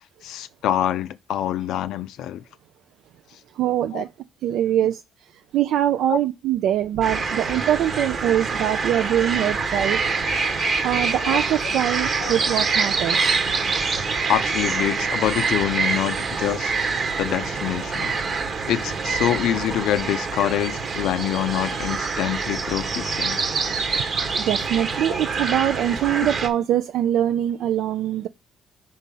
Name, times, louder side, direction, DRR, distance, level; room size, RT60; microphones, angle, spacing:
voice 1, 0.2-2.4 3.9-4.0 6.1-6.2 9.8-9.9 11.2-11.4 12.2-12.3 14.3-16.7 17.2-18.1 18.7-23.4, left 12 dB, 85° left, 0.3 m, -25 dB
voice 2, 3.6-4.1 4.4-5.0 5.5-10.0 10.8-13.4 20.5-20.6 24.3-28.3, right 11 dB, 85° right, 0.3 m, -23 dB
sound 1, 7.0-26.5, right 4 dB, 50° right, 1.1 m, -25 dB
5.3 x 4.1 x 5.3 m
cardioid pair, 90°, 0 cm